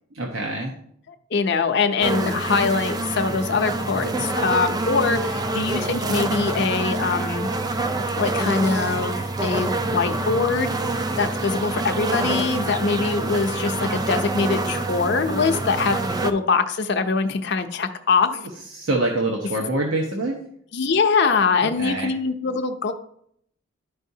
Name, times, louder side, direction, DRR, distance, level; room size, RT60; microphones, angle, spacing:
voice 1, 0.1-0.7 18.7-20.4 21.8-22.1, right 2 dB, 75° right, 0 dB, 1.0 m, -25 dB
voice 2, 1.3-7.5 8.2-10.8 11.2-18.3 20.7-22.9, left 4 dB, 55° left, 6 dB, 0.6 m, -23 dB
sound 1, 2.0-16.3, right 2 dB, 20° right, 0.3 m, -26 dB
11.5 x 4.7 x 2.7 m, 0.68 s
head